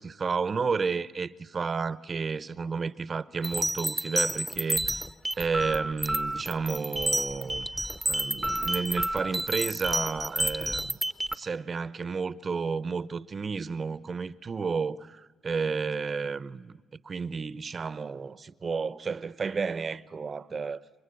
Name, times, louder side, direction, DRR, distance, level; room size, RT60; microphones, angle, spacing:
voice 1, 0.0-5.0 5.4-7.7 8.1-11.0 11.3-16.7 17.0-20.8, right 5 dB, 40° right, 0.8 m, -32 dB
sound 1, 3.4-11.3, right 1 dB, 5° right, 0.8 m, -30 dB
29.0 x 23.5 x 8.4 m
cardioid pair, 90°, 0 cm